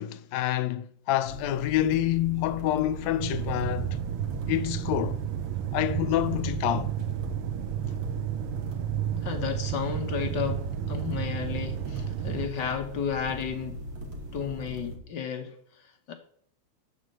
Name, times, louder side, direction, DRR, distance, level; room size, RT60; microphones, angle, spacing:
voice 1, 0.0-4.0 4.5-5.2 5.7-6.9, left 13 dB, 75° left, 1.8 m, -27 dB
sound 1, 1.3-15.0, equal, 45° right, 2.3 m, -39 dB
sound 2, 3.2-12.5, right 13 dB, 90° right, 1.2 m, -32 dB
voice 2, 9.2-13.8 14.3-16.1, left 7 dB, 60° left, 1.1 m, -33 dB
9.6 x 6.2 x 7.7 m
omnidirectional pair, 3.3 m